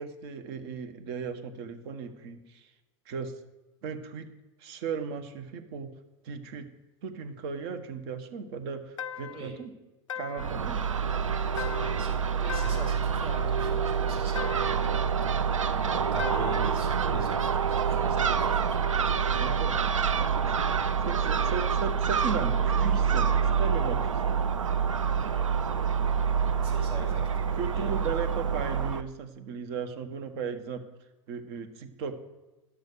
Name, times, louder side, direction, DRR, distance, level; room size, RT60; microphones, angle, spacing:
voice 1, 0.0-2.7 3.0-3.3 3.8-4.3 4.6-5.9 6.2-6.7 7.0-9.7 10.1-10.8 19.4-19.8 20.2-24.4 27.6-30.8 31.3-32.2, right 5 dB, 55° right, 8 dB, 1.3 m, -36 dB
sound 1, 9.0-9.5 10.1-10.6 11.6-12.1 12.5-13.0 14.4-14.9 16.2-16.7, left 9 dB, 85° left, 0.4 m, -39 dB
Crow / Gull seagull, 10.4-29.0, right 6 dB, 85° right, 0.6 m, -27 dB
voice 2, 11.5-18.9 26.6-27.9, right 1 dB, 35° right, -1 dB, 4.0 m, -42 dB
11.5 x 6.4 x 6.8 m, 1.1 s
figure-of-eight pair, 90°, 16 cm